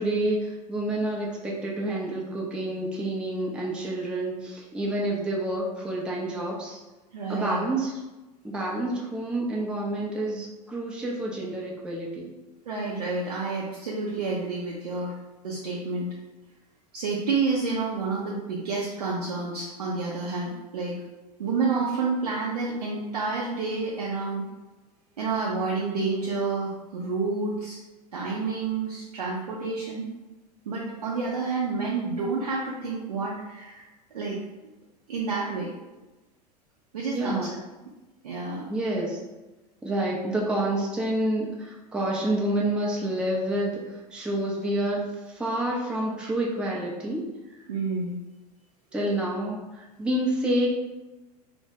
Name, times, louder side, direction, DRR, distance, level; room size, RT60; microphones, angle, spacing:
voice 1, 0.0-6.8 7.3-8.0 8.4-12.3 37.1-37.5 38.7-39.2 39.8-47.2 47.6-47.7 48.9-50.7, right 1 dB, 5° right, -3 dB, 0.4 m, -28 dB
voice 2, 7.1-7.6 12.7-15.2 15.4-16.1 16.9-21.0 21.4-24.4 25.2-27.8 28.1-30.1 30.7-33.9 34.1-34.4 35.1-35.7 36.9-37.5 38.2-38.7 47.7-48.2, right 4 dB, 70° right, -4 dB, 0.5 m, -29 dB
2.1 x 2.1 x 3.2 m, 1.1 s
figure-of-eight pair, 80°, 21 cm